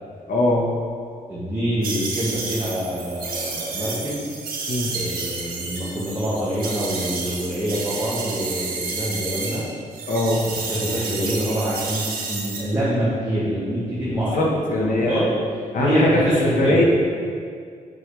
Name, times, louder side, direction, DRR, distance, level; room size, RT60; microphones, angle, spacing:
voice 1, 0.3-0.6 4.7-4.9 10.1-10.4 14.3-15.3 15.7-16.2 16.6-16.8, left 2 dB, 65° left, -2 dB, 1.5 m, -21 dB
voice 2, 1.3-4.3 4.9-9.7 10.7-15.3 15.8-16.8, equal, 15° right, -10 dB, 1.9 m, -25 dB
sound 1, 1.8-9.6 9.9-12.6, right 4 dB, 85° right, 1.8 m, -30 dB
7.9 x 6.9 x 3.5 m, 2.1 s
cardioid pair, 95°, 15 cm